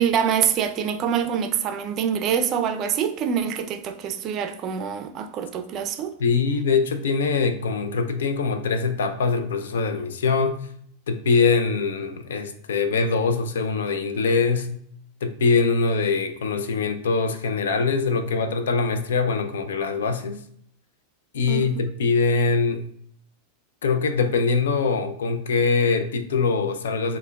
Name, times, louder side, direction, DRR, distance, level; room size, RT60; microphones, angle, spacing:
voice 1, 0.0-6.1 21.5-21.7, right 8 dB, 40° right, 0.4 m, -25 dB
voice 2, 6.2-10.6 11.1-14.7 15.2-20.4 21.3-22.8 23.8-27.2, left 4 dB, 90° left, 0.4 m, -23 dB
4.4 x 2.1 x 2.2 m
hypercardioid pair, 120°, 0 cm